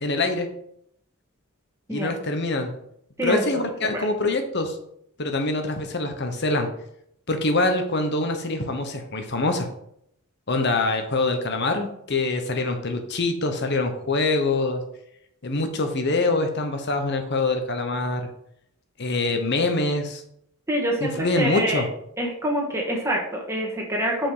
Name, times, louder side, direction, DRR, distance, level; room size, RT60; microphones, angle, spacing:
voice 1, 0.0-0.5 1.9-2.7 3.2-4.8 5.2-6.7 7.3-9.7 10.5-14.8 15.4-18.3 19.0-20.2 21.0-21.9, left 2 dB, 50° left, 6 dB, 1.1 m, -24 dB
voice 2, 3.2-4.0 20.7-21.8 22.2-24.3, right 1 dB, 15° right, -2 dB, 1.7 m, -26 dB
5.9 x 5.2 x 5.0 m, 0.73 s
head